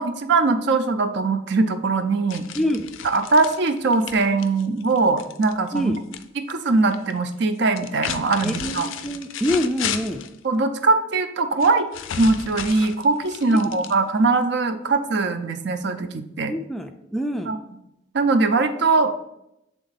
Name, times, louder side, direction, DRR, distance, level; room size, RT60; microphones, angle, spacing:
voice 1, 0.0-2.4 3.0-6.0 6.5-8.9 10.4-11.9 12.2-16.5 17.5-17.6 18.1-19.2, right 3 dB, 60° right, 9 dB, 0.5 m, -21 dB
sound 1, 2.3-6.2 6.5-7.1 7.7-10.4 11.6-14.3, left 8 dB, 85° left, 0.4 m, -34 dB
voice 2, 2.5-2.9 5.7-5.9 8.4-10.2 13.5-13.8 16.5-17.5, equal, ahead, 5 dB, 0.3 m, -26 dB
7.4 x 3.5 x 4.0 m, 0.83 s
head